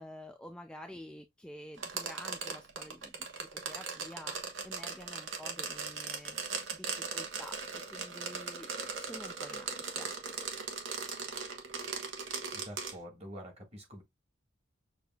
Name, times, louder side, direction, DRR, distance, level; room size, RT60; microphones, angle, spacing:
voice 1, 0.0-4.4 4.6-6.4 6.7-8.7 9.0-10.1, left 1 dB, 5° left, 0.4 m, -49 dB
sound 1, 1.8-13.0, right 5 dB, 75° right, 1.1 m, -39 dB
voice 2, 12.5-14.0, equal, 35° right, 1.8 m, -47 dB
6.6 x 2.6 x 2.3 m
head